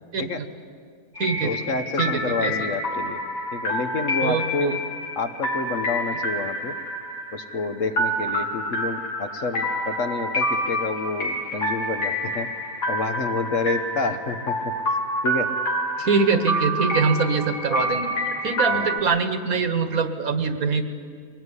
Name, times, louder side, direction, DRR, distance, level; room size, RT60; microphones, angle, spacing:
voice 1, 0.1-0.5 1.2-1.6 2.0-2.7 4.2-4.8 16.0-18.2 18.4-20.8, right 4 dB, 60° right, 9 dB, 1.7 m, -24 dB
sound 1, 1.2-19.0, equal, 80° left, 3.9 m, -27 dB
voice 2, 1.4-3.2 3.5-4.7 5.2-6.7 7.3-12.5 12.9-14.7 15.2-15.5 18.7-19.0, left 4 dB, 55° left, 8 dB, 1.3 m, -29 dB
23.0 x 18.5 x 9.8 m, 2.2 s
omnidirectional pair, 1.7 m